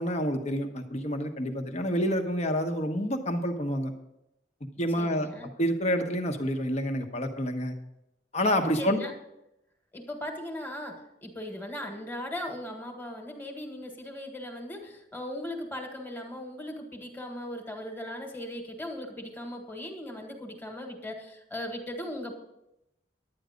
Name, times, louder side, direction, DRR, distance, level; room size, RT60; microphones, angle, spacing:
voice 1, 0.0-3.9 4.8-5.3 5.6-7.7 8.3-9.0, equal, 40° left, 5 dB, 1.1 m, -28 dB
voice 2, 5.0-5.5 8.8-9.1 9.9-22.3, left 1 dB, 10° left, 3 dB, 1.6 m, -38 dB
11.0 x 9.3 x 5.1 m, 0.86 s
head